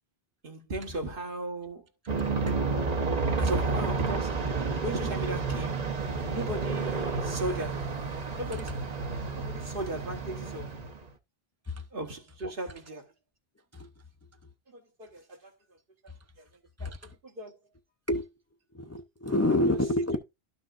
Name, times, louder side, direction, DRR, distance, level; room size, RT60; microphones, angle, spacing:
voice 1, 0.4-1.9 3.4-4.4 4.8-5.8 6.3-7.9 8.3-8.7 9.3-10.7 11.9-13.1 14.7-15.8 16.4-16.5 16.8-17.0 17.2-17.6 19.7-19.8, right 1 dB, 60° right, 1.5 m, -36 dB
Aircraft, 2.1-11.1, right 4 dB, 40° right, 0.9 m, -31 dB
voice 2, 16.8-17.1 18.1-18.3 18.7-20.2, left 1 dB, 25° left, 0.4 m, -28 dB
12.0 x 6.1 x 2.5 m
omnidirectional pair, 1.1 m